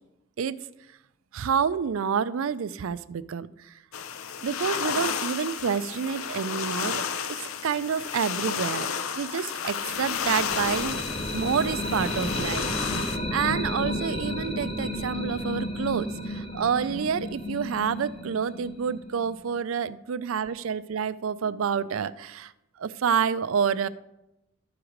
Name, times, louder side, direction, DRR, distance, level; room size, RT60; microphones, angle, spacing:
voice 1, 1.3-3.7 4.4-7.0 7.3-8.9 9.1-11.0 11.3-22.5 22.8-23.9, right 7 dB, 75° right, 15 dB, 0.4 m, -28 dB
sound 1, 3.9-13.2, left 7 dB, 75° left, 0.5 m, -32 dB
sound 2, 9.8-19.6, left 1 dB, 25° left, 1.0 m, -32 dB
12.0 x 4.7 x 5.0 m, 0.90 s
head